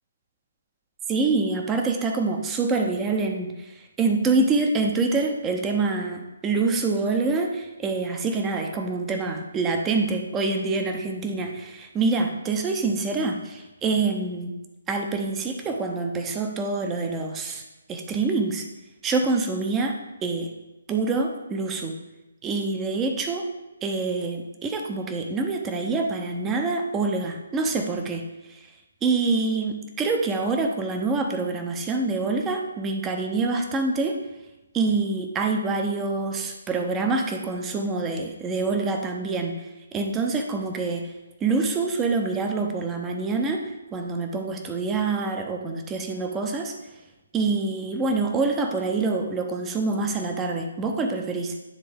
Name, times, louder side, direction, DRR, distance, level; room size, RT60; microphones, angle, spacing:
voice 1, 1.1-14.5 14.9-17.6 17.9-18.6 19.0-20.0 20.2-20.5 20.9-22.0 22.4-23.5 23.8-28.2 29.0-34.2 34.7-39.5 39.9-41.0 41.4-43.6 43.9-46.7 47.3-51.5, right 3 dB, 15° right, 4 dB, 0.7 m, -26 dB
9.8 x 3.8 x 3.5 m, 1.0 s
figure-of-eight pair, 140°, 0 cm